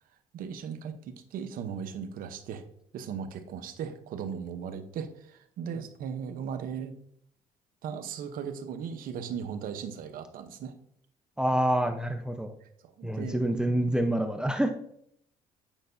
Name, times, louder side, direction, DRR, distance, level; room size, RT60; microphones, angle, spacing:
voice 1, 0.3-2.6 2.9-6.9 7.8-10.7 12.6-13.5, right 7 dB, 75° right, 9 dB, 0.9 m, -37 dB
voice 2, 11.4-12.5 13.0-14.7, right 1 dB, 5° right, 6 dB, 0.7 m, -27 dB
8.9 x 5.4 x 2.7 m, 0.67 s
cardioid pair, 80°, 15 cm